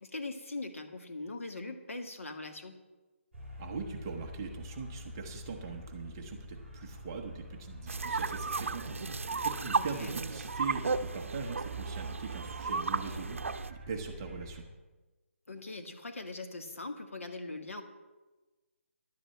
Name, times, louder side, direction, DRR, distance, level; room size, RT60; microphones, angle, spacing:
voice 1, 0.0-2.8 9.7-10.1 15.5-17.8, left 2 dB, 80° left, 5 dB, 2.1 m, -41 dB
sound 1, 3.3-14.6, left 1 dB, ahead, 4.3 m, -47 dB
voice 2, 3.6-14.6, right 5 dB, 15° right, 2 dB, 0.9 m, -41 dB
sound 2, 7.9-13.7, right 4 dB, 65° right, 0.7 m, -34 dB
11.0 x 8.4 x 7.6 m, 1.2 s
hypercardioid pair, 175°, 7 cm